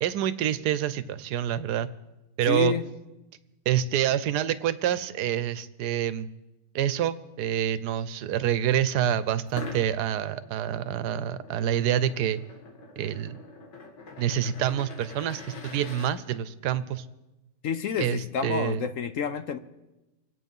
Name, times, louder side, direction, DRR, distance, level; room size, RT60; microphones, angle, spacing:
voice 1, 0.0-1.9 2.4-2.7 3.7-6.3 6.7-12.4 13.0-13.4 14.2-17.0 18.0-18.8, right 10 dB, 70° right, 14 dB, 1.2 m, -27 dB
voice 2, 2.5-2.9 17.6-19.6, left 7 dB, 60° left, 11 dB, 0.9 m, -29 dB
sound 1, 9.5-16.1, left 3 dB, 85° left, 2.6 m, -44 dB
25.0 x 8.9 x 5.4 m, 1.0 s
omnidirectional pair, 1.9 m